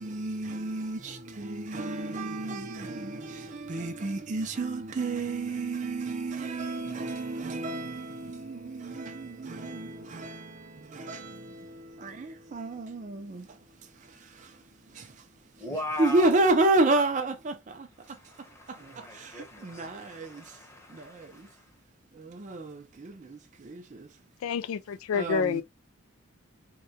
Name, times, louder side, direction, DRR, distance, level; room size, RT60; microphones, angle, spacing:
voice 1, 0.0-1.0 1.4-3.1 3.7-8.0 9.0-9.1 9.6-9.9 10.2-10.3 11.1-11.2 12.5-13.0 16.0-17.5 19.7-19.9 25.2-25.6, right 2 dB, 35° right, 0.4 m, -28 dB
voice 2, 15.6-16.4 18.1-21.7, left 1 dB, 15° left, 0.8 m, -39 dB
voice 3, 24.4-25.6, left 6 dB, 85° left, 0.3 m, -28 dB
3.5 x 2.2 x 2.7 m
head